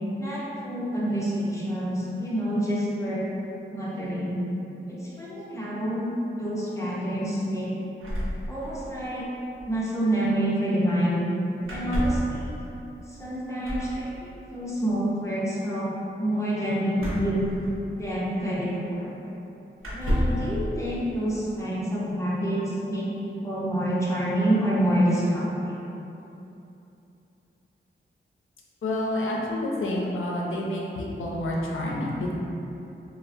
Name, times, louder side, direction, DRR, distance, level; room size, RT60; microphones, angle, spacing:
voice 1, 0.2-3.2 3.7-4.4 4.9-6.1 6.3-7.7 8.5-9.3 9.6-11.2 11.7-12.6 13.1-15.9 16.2-17.5 17.9-19.1 19.9-25.8, right 1 dB, 15° left, -8 dB, 0.5 m, -27 dB
sound 1, 8.0-9.1 9.3-9.4 9.6-9.8 11.6-12.4 13.6-14.0 16.9-18.1 19.0-19.1 19.8-20.5, equal, 85° right, 0.6 m, -30 dB
voice 2, 28.8-32.3, left 1 dB, 80° left, -3 dB, 0.5 m, -28 dB
3.1 x 2.0 x 2.5 m, 2.9 s
wide cardioid pair, 125°, 20 cm